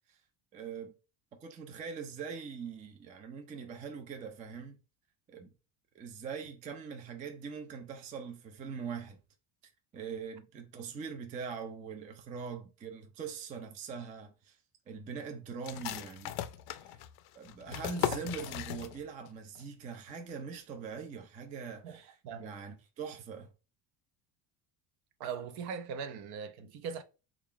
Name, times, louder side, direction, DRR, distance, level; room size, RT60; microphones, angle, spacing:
voice 1, 0.5-0.9 1.4-4.8 5.3-5.5 5.9-9.2 9.9-14.6 14.9-16.4 16.8-17.0 17.4-23.5, right 6 dB, 20° right, 0.3 m, -42 dB
sound 1, 15.6-19.3 19.6-19.7 20.1-20.6, left 12 dB, 55° left, 0.5 m, -38 dB
voice 2, 21.8-22.5 25.2-27.0, right 6 dB, 55° right, 0.6 m, -40 dB
3.4 x 2.4 x 3.6 m
cardioid pair, 130°, 46 cm